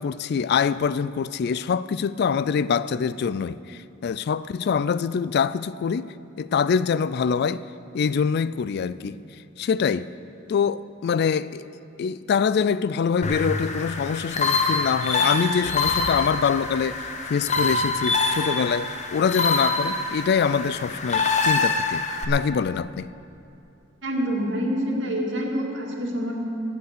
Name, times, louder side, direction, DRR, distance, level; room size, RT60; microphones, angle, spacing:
voice 1, 0.0-7.6 7.9-9.2 9.6-10.1 10.5-11.6 12.0-23.1, left 6 dB, 55° left, 0.3 m, -24 dB
sound 1, 13.2-22.3, left 3 dB, 35° left, 1.0 m, -25 dB
voice 2, 24.0-26.3, equal, 65° right, 2.3 m, -26 dB
17.0 x 8.1 x 6.7 m
head